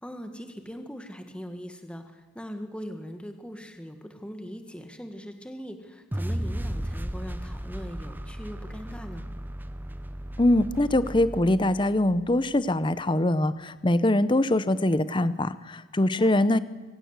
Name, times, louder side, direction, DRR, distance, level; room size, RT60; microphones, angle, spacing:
voice 1, 0.0-9.3 16.0-16.3, equal, 5° left, 6 dB, 1.7 m, -40 dB
sound 1, 6.1-12.3, right 1 dB, 10° right, 0.7 m, -35 dB
voice 2, 10.4-16.6, left 1 dB, 25° left, 15 dB, 0.7 m, -23 dB
24.5 x 16.0 x 8.1 m, 1.3 s
head